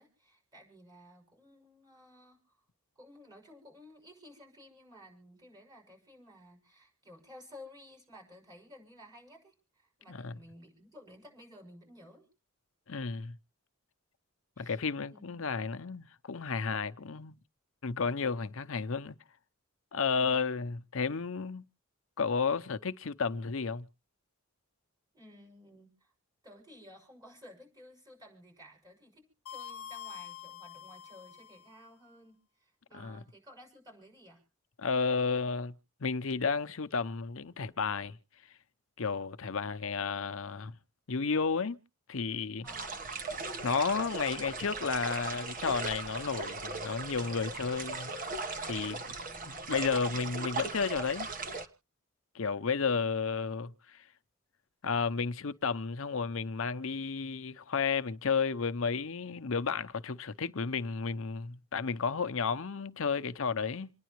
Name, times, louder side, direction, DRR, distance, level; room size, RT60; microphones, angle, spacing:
voice 1, 0.0-2.4 3.0-12.3 14.6-14.8 15.1-15.5 20.1-20.4 25.1-26.1 26.4-34.4 42.6-43.0, left 1 dB, 20° right, 6.2 m, -55 dB
voice 2, 10.1-10.4 12.9-13.4 14.6-17.4 17.8-19.2 19.9-21.6 22.2-23.9 32.9-33.2 34.8-35.7 36.0-38.2 39.0-40.8 41.1-41.8 42.1-42.7 43.6-48.2 48.6-49.2 49.5-51.3 52.3-54.1 54.8-63.9, left 5 dB, 65° left, 0.7 m, -32 dB
sound 1, 29.5-31.8, left 8 dB, 90° left, 1.0 m, -46 dB
sound 2, 42.7-51.7, right 3 dB, 40° right, 1.2 m, -38 dB
28.0 x 10.5 x 3.0 m
head